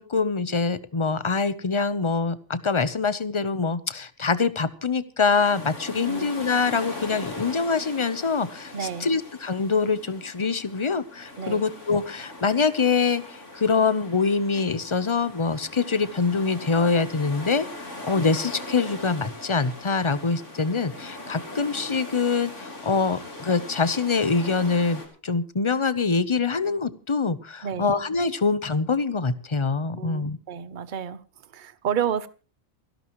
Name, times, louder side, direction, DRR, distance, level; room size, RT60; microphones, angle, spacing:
voice 1, 0.0-13.2 13.5-17.7 18.0-30.4, left 4 dB, 30° left, 0.7 m, -24 dB
sound 1, 5.3-25.1, left 2 dB, 60° left, 3.9 m, -40 dB
voice 2, 8.7-9.1 11.4-11.6 27.6-27.9 29.9-31.2 31.5-32.3, right 8 dB, 40° right, 0.9 m, -30 dB
28.0 x 11.5 x 3.1 m
omnidirectional pair, 1.4 m